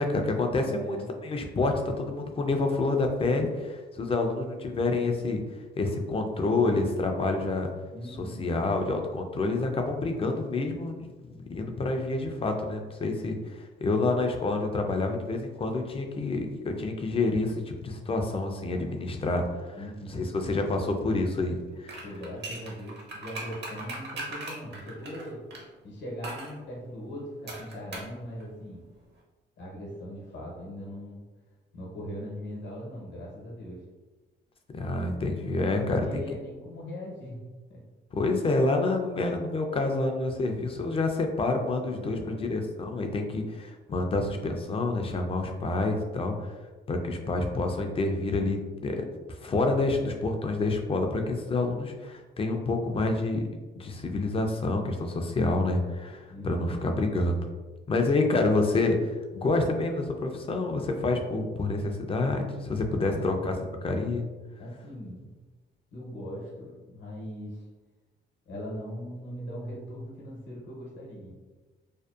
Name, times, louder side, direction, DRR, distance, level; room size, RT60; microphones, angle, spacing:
voice 1, 0.0-5.4 5.8-7.7 8.2-22.0 34.7-36.2 38.1-46.5 46.9-49.0 49.4-53.4 53.8-57.4 57.9-63.6 63.8-64.3, left 2 dB, 30° left, 4 dB, 0.3 m, -28 dB
voice 2, 0.5-1.1 7.9-8.6 19.7-20.3 22.0-25.4 25.8-28.8 29.6-31.2 31.7-33.8 35.6-37.8 41.9-42.5 56.3-56.8 63.0-63.3 64.6-65.3 65.9-67.6 68.5-71.3, equal, 65° left, -4 dB, 0.8 m, -40 dB
sound 1, 21.8-25.6 26.2-26.5 27.5-28.2 28.4-28.5, right 2 dB, 60° right, 0.7 m, -39 dB
2.6 x 2.1 x 2.3 m, 1.2 s
cardioid pair, 90°, 20 cm